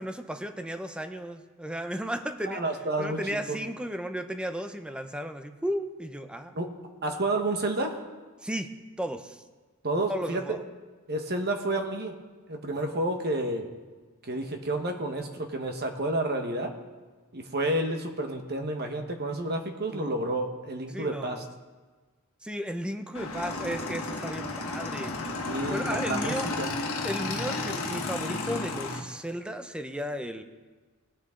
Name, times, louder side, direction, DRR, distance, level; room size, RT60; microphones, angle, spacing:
voice 1, 0.0-2.6 3.0-6.6 8.4-8.7 9.0-9.4 10.1-10.6 19.9-20.2 20.9-21.5 22.4-25.1 25.7-26.5 27.0-30.4, equal, 5° right, 8 dB, 0.6 m, -34 dB
voice 2, 2.5-3.2 3.5-3.6 6.5-6.7 7.0-8.0 9.8-10.4 11.1-12.2 12.5-13.7 14.2-16.7 17.3-21.4 25.4-26.7, right 2 dB, 50° right, 4 dB, 1.3 m, -30 dB
Motorcycle / Engine, 23.1-29.0, left 3 dB, 70° left, 1.6 m, -32 dB
20.0 x 7.0 x 3.8 m, 1.3 s
head